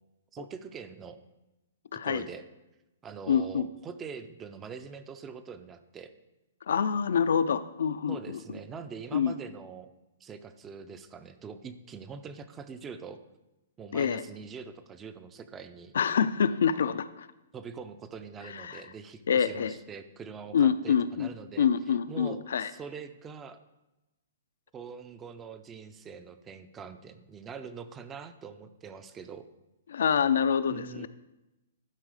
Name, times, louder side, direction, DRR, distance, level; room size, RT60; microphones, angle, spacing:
voice 1, 0.3-1.2 2.0-2.5 3.0-6.1 8.1-9.9 10.2-13.2 13.8-15.9 17.5-21.7 22.1-23.6 24.7-29.5 30.7-31.1, right 6 dB, 15° right, 11 dB, 0.4 m, -43 dB
voice 2, 1.9-2.3 3.3-3.7 6.7-8.4 9.1-9.3 13.9-14.2 15.9-17.3 18.5-18.8 19.3-19.7 20.5-21.3 21.6-22.7 29.9-31.1, left 7 dB, 75° left, 14 dB, 0.4 m, -26 dB
11.5 x 4.4 x 4.9 m, 0.99 s
hypercardioid pair, 160°, 0 cm